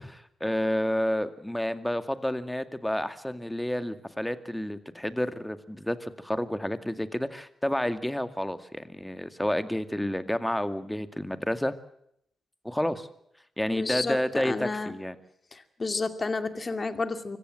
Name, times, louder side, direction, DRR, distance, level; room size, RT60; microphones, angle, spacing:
voice 1, 0.0-11.7 12.6-13.1 13.6-15.2, left 1 dB, 10° left, 10 dB, 2.2 m, -30 dB
voice 2, 13.7-14.9 15.5-17.4, left 3 dB, 40° left, 9 dB, 2.5 m, -31 dB
25.0 x 15.5 x 7.7 m, 0.73 s
supercardioid pair, 45°, 0 cm